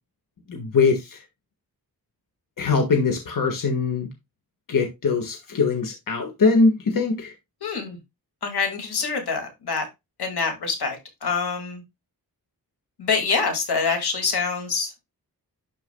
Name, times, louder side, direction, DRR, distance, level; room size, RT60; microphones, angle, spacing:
voice 1, 0.5-1.2 2.6-4.1 4.7-7.3, left 4 dB, 55° left, 3 dB, 1.6 m, -22 dB
voice 2, 7.6-8.0 8.4-9.9 10.2-11.0 11.2-11.8 13.0-14.9, left 5 dB, 80° left, 4 dB, 2.3 m, -25 dB
11.5 x 4.7 x 2.3 m, 0.21 s
wide cardioid pair, 95°, 38 cm